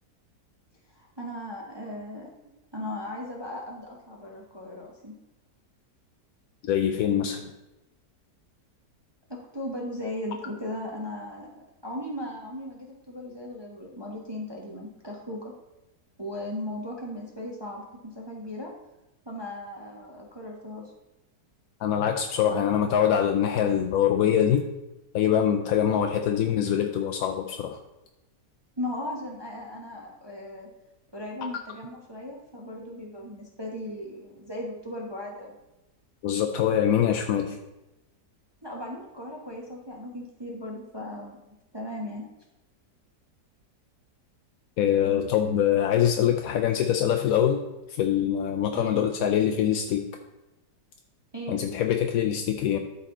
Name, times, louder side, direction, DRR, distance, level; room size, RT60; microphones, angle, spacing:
voice 1, 0.9-5.1 9.3-15.5 16.2-18.7 19.2-20.8 28.8-30.7 31.1-35.6 38.6-42.2 48.7-49.0 51.3-51.6, left 1 dB, 20° right, -2 dB, 0.9 m, -37 dB
voice 2, 6.6-7.5 21.8-24.7 25.1-27.8 36.2-37.6 44.8-47.6 47.9-50.1 51.5-52.8, left 9 dB, 70° left, 4 dB, 0.9 m, -24 dB
12.5 x 4.2 x 3.8 m, 0.98 s
omnidirectional pair, 1.8 m